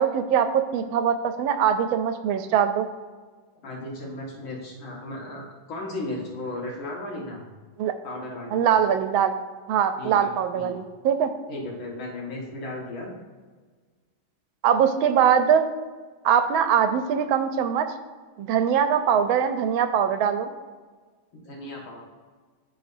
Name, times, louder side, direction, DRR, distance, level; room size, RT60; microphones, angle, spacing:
voice 1, 0.0-2.9 7.8-7.9 8.5-9.3 9.7-11.3 14.6-15.7 16.2-17.9 18.4-20.5, right 8 dB, 85° right, 9 dB, 1.4 m, -22 dB
voice 2, 3.6-7.4 8.0-8.6 10.0-10.7 11.5-13.1 21.3-22.0, left 2 dB, 80° left, -3 dB, 2.4 m, -35 dB
13.0 x 4.4 x 2.6 m, 1.4 s
omnidirectional pair, 2.2 m